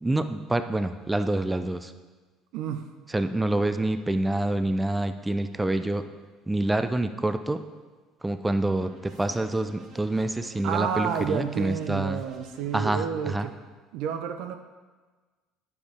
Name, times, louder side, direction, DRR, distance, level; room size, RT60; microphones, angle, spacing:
voice 1, 0.0-1.9 3.1-6.0 6.5-7.6 8.2-12.2 12.7-13.5, right 2 dB, 15° right, 9 dB, 0.5 m, -27 dB
voice 2, 2.5-2.9 10.6-13.5 13.9-14.5, right 8 dB, 70° right, 6 dB, 0.5 m, -30 dB
sound 1, 8.8-12.7, right 3 dB, 50° right, 2.1 m, -50 dB
9.4 x 7.0 x 3.5 m, 1.3 s
hypercardioid pair, 70°, 0 cm